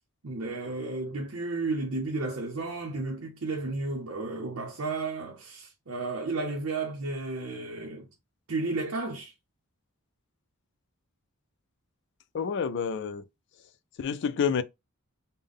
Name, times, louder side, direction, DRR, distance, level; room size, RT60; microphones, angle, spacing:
voice 1, 0.2-8.1 8.5-9.3, right 3 dB, 65° right, 0.7 m, -33 dB
voice 2, 12.3-13.2 14.0-14.6, left 6 dB, 55° left, 0.3 m, -28 dB
3.5 x 2.1 x 3.6 m
head